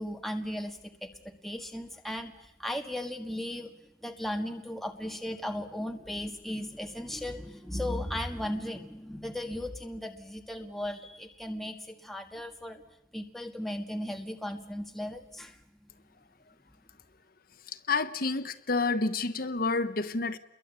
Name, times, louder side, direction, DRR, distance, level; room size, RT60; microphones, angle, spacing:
voice 1, 0.0-12.8 13.1-15.6, left 1 dB, ahead, 1.6 m, -36 dB
voice 2, 17.7-20.4, left 3 dB, 50° left, 1.1 m, -29 dB
29.0 x 22.5 x 8.2 m
head